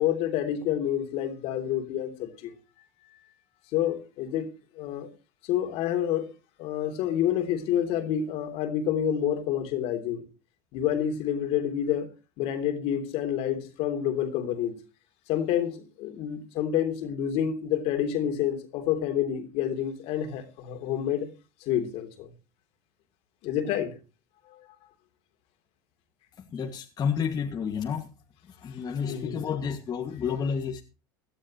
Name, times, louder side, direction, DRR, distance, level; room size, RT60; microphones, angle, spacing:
voice 1, 0.0-2.3 3.7-4.5 4.8-5.1 5.5-6.3 6.6-10.2 10.7-12.1 12.4-14.8 15.3-21.3 21.7-22.3 23.4-23.9 29.1-29.4, left 10 dB, 60° left, 3.3 m, -28 dB
voice 2, 26.5-28.1 28.6-30.8, left 7 dB, 35° left, 2.3 m, -30 dB
18.0 x 12.0 x 3.2 m
supercardioid pair, 100°, 11 cm